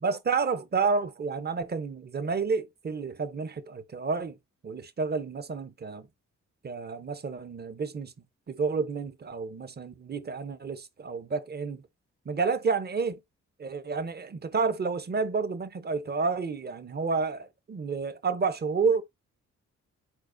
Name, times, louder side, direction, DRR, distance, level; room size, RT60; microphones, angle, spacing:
voice 1, 0.0-4.4 4.6-6.1 6.6-8.1 8.5-11.8 12.3-13.2 13.6-19.0, right 4 dB, 30° right, 0.7 m, -30 dB
4.5 x 4.2 x 2.6 m
supercardioid pair, 60°, 32 cm